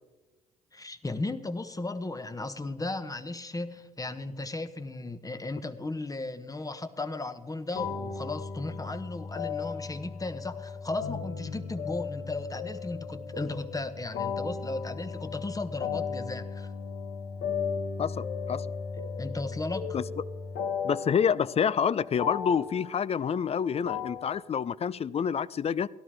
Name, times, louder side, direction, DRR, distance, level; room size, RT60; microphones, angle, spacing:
voice 1, 0.7-16.7 19.2-20.0, left 2 dB, 20° left, 1.1 m, -35 dB
sound 1, 7.7-24.4, left 6 dB, 75° left, 1.4 m, -36 dB
voice 2, 18.0-18.7 19.9-20.0 20.8-25.9, left 7 dB, 40° left, 0.5 m, -28 dB
17.0 x 12.0 x 3.4 m
hypercardioid pair, 50°, 17 cm